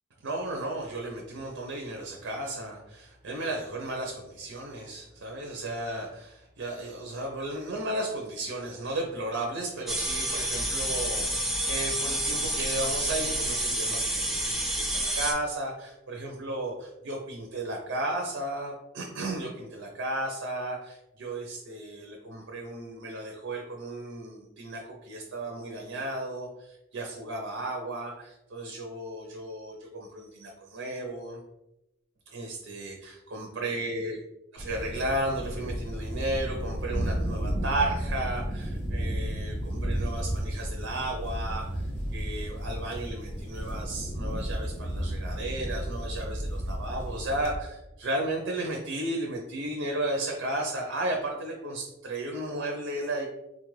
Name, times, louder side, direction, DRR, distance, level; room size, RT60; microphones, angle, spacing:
voice 1, 0.2-31.4 32.3-34.2 34.5-53.3, right 1 dB, 80° right, 0 dB, 0.6 m, -34 dB
sound 1, 9.9-15.3, right 1 dB, ahead, 0.4 m, -29 dB
sound 2, 34.6-47.6, equal, 35° left, 0.9 m, -33 dB
4.0 x 2.4 x 3.1 m, 0.91 s
head